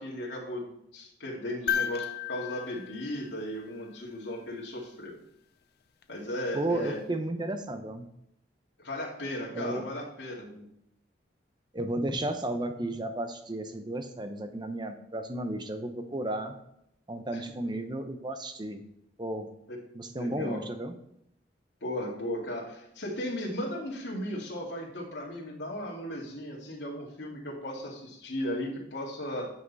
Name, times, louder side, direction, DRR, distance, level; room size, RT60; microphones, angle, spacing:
voice 1, 0.0-5.1 6.1-7.0 8.8-10.7 17.3-17.4 19.7-19.8 20.2-20.6 21.8-29.5, left 1 dB, 75° left, -5 dB, 2.3 m, -36 dB
sound 1, 1.7-4.0 6.0-6.1, left 9 dB, 60° left, 0.7 m, -34 dB
voice 2, 6.5-8.1 9.5-9.8 11.7-16.6 17.1-18.8 19.2-19.5 19.9-20.9, right 1 dB, 25° right, 7 dB, 0.8 m, -33 dB
9.7 x 5.8 x 4.1 m, 0.76 s
head